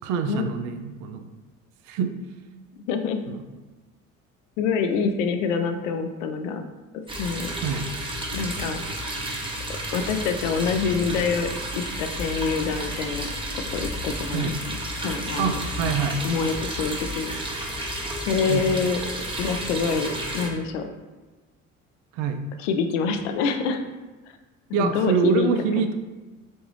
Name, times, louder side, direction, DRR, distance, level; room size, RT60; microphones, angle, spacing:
voice 1, 0.0-1.3 1.9-2.1 3.3-3.4 7.6-7.8 14.3-14.5 15.4-16.2 18.5-18.7 22.1-22.4 24.7-25.9, right 6 dB, 50° right, 7 dB, 0.5 m, -25 dB
voice 2, 2.9-3.2 4.6-6.6 7.2-7.5 8.3-8.8 9.9-11.5 11.8-13.3 13.5-14.5 15.0-15.6 16.2-17.3 18.3-19.0 19.4-20.9 22.6-23.8 24.7-25.5, left 5 dB, 65° left, 7 dB, 0.5 m, -26 dB
sound 1, 7.1-20.5, right 1 dB, 15° right, 0.7 m, -31 dB
3.5 x 2.5 x 3.2 m, 1.2 s
figure-of-eight pair, 55°, 40 cm